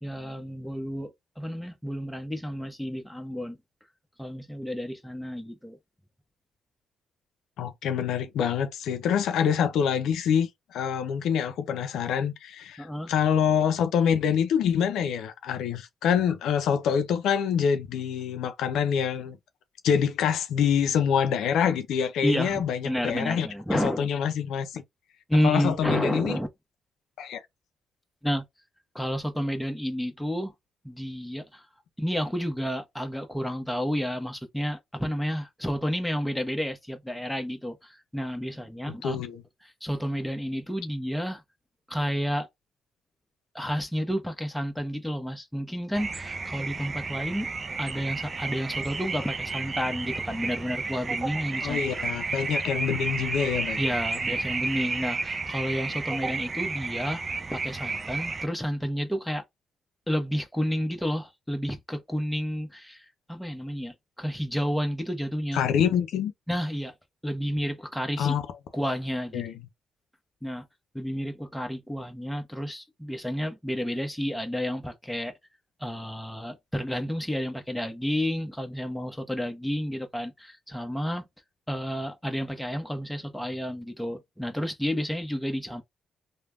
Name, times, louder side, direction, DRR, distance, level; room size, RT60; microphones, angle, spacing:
voice 1, 0.0-1.1 1.4-3.6 4.2-5.8 12.8-13.1 22.2-24.1 25.3-26.5 28.2-28.4 28.9-30.5 30.8-31.6 32.0-39.2 39.6-41.4 41.9-42.5 43.5-47.5 47.8-51.8 53.8-57.2 57.5-59.4 60.1-65.6 66.5-66.9 67.2-68.3 68.7-69.4 70.4-70.7 70.9-75.3 75.8-81.3 81.7-85.8, equal, 5° left, 1.0 m, -30 dB
voice 2, 7.6-19.4 19.8-24.8 25.4-26.4 27.2-27.4 38.9-39.4 51.6-53.8 65.5-66.3 68.2-68.4 69.3-69.5, left 8 dB, 80° left, 0.4 m, -26 dB
sound 1, 45.9-58.5, right 4 dB, 35° right, 0.4 m, -32 dB
3.2 x 2.2 x 2.4 m
supercardioid pair, 60°, 0 cm